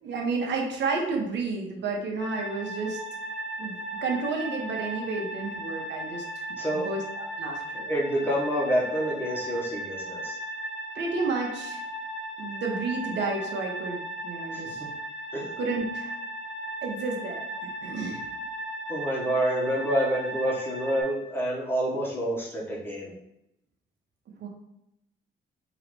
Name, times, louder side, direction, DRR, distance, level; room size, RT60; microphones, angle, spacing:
voice 1, 0.0-3.0 3.6-6.2 6.7-7.9 10.9-11.8 12.4-14.8 15.6-16.2 16.8-17.4 17.8-18.2 24.4-24.5, right 4 dB, 60° right, 0 dB, 1.1 m, -31 dB
sound 1, 2.2-21.0, right 1 dB, 80° left, 1.1 m, -36 dB
voice 2, 6.6-6.9 7.9-10.4 14.5-14.9 15.3-15.5 18.9-23.1, right 1 dB, 10° left, -5 dB, 1.5 m, -28 dB
3.8 x 3.0 x 3.3 m, 0.83 s
cardioid pair, 90°, 20 cm